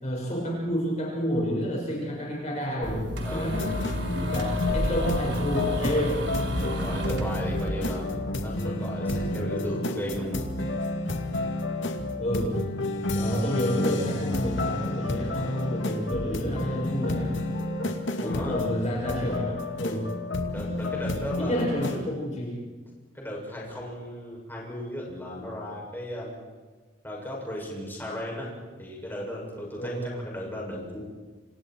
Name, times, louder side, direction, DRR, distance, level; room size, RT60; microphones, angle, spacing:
voice 1, 0.0-3.7 4.2-6.3 12.2-12.6 13.1-17.6 18.2-20.1 21.4-22.6 29.8-30.1, equal, 35° left, -2 dB, 5.7 m, -29 dB
sound 1, 2.8-7.7, equal, 60° right, 3.6 m, -31 dB
voice 2, 3.2-3.6 6.8-10.5 18.2-18.6 20.5-21.7 23.1-26.3 27.0-28.5 28.8-31.0, left 1 dB, 10° left, -3 dB, 7.0 m, -35 dB
sound 2, 3.5-22.0, left 2 dB, 75° left, 2.3 m, -30 dB
29.5 x 27.0 x 4.6 m, 1.4 s
head